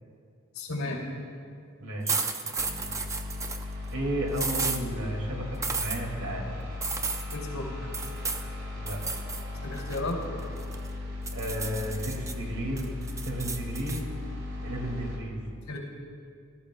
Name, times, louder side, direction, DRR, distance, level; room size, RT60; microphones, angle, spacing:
voice 1, 0.6-1.1 7.3-7.7 9.5-10.2 15.7-15.8, left 2 dB, 90° left, -3 dB, 2.7 m, -33 dB
voice 2, 1.8-2.6 3.9-6.5 8.8-9.0 11.3-12.9 13.2-14.1 14.6-15.4, right 1 dB, 85° right, 0 dB, 2.2 m, -33 dB
sound 1, 2.1-3.6 4.3-4.8 5.6-6.0 6.8-7.4 7.9-8.5 8.9-9.4 9.8-10.9 11.3-12.3 12.8-14.0, right 4 dB, 15° right, 0.5 m, -32 dB
sound 2, 2.6-15.2, left 2 dB, 65° right, 2.3 m, -37 dB
18.0 x 13.0 x 2.2 m, 2.3 s
head